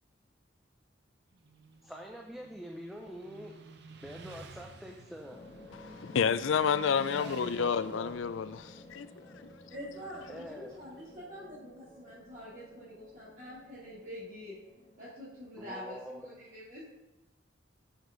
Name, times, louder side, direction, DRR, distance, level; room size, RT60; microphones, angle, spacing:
Motorcycle, 1.3-11.1, right 3 dB, 60° right, 0.7 m, -52 dB
voice 1, 1.8-3.5 4.0-5.4 7.2-8.1 10.3-10.7 15.6-16.3, equal, ahead, 0.5 m, -45 dB
sound 1, 5.3-16.1, left 1 dB, 35° left, 0.8 m, -54 dB
voice 2, 5.8-9.1, left 6 dB, 75° left, 0.4 m, -29 dB
voice 3, 9.7-14.5 15.0-16.8, equal, 40° right, 2.8 m, -46 dB
8.0 x 6.4 x 3.9 m
head